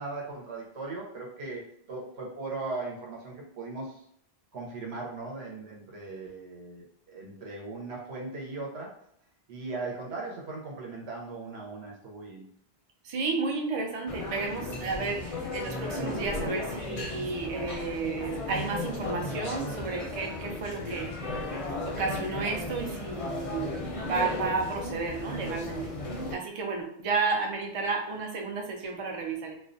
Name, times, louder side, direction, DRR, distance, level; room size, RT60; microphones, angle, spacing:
voice 1, 0.0-4.0 4.5-9.0 9.5-12.5, right 3 dB, 85° right, -2 dB, 1.0 m, -38 dB
voice 2, 13.0-21.3 21.9-25.8 26.3-29.5, right 4 dB, 55° right, 2 dB, 0.4 m, -32 dB
sound 1, 14.1-26.4, left 2 dB, 45° left, 0.5 m, -35 dB
2.3 x 2.2 x 2.5 m, 0.69 s
omnidirectional pair, 1.1 m